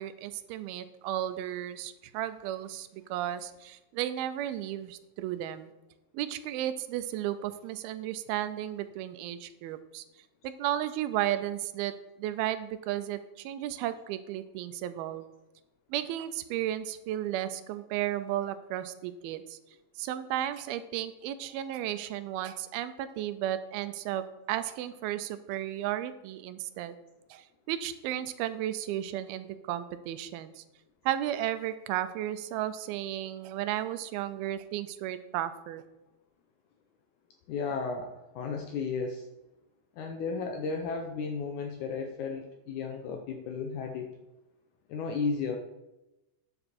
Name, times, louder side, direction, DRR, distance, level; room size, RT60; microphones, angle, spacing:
voice 1, 0.0-5.7 6.1-10.0 10.4-11.9 12.2-15.2 15.9-19.6 20.0-26.9 27.3-30.6 31.1-35.8, right 12 dB, 85° right, 12 dB, 2.4 m, -34 dB
voice 2, 37.5-39.3 40.0-44.1 44.9-45.6, left 4 dB, 80° left, 4 dB, 1.8 m, -34 dB
9.7 x 6.8 x 4.3 m, 0.96 s
omnidirectional pair, 4.3 m